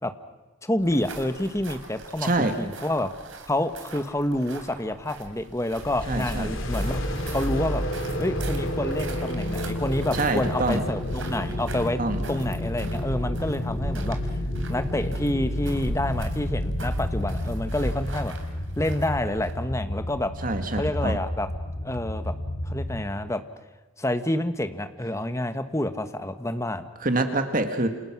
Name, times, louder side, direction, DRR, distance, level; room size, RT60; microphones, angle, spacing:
voice 1, 0.6-3.1 3.5-7.0 7.3-7.8 8.2-12.0 12.3-14.2 14.7-18.3 18.8-20.3 20.7-21.5 21.8-22.3 22.6-23.4 24.0-26.9, left 1 dB, 15° left, 10 dB, 1.3 m, -28 dB
sound 1, 0.8-19.7, right 2 dB, 85° right, 3.6 m, -41 dB
voice 2, 2.2-2.5 6.1-6.5 10.1-10.8 12.0-12.2 20.4-21.2 27.0-27.9, right 2 dB, 45° right, 7 dB, 1.8 m, -25 dB
sound 2, 5.7-23.0, left 1 dB, 85° left, 2.7 m, -30 dB
sound 3, 10.1-15.7, right 1 dB, 10° right, 2.5 m, -40 dB
28.5 x 28.0 x 6.1 m, 1.2 s
head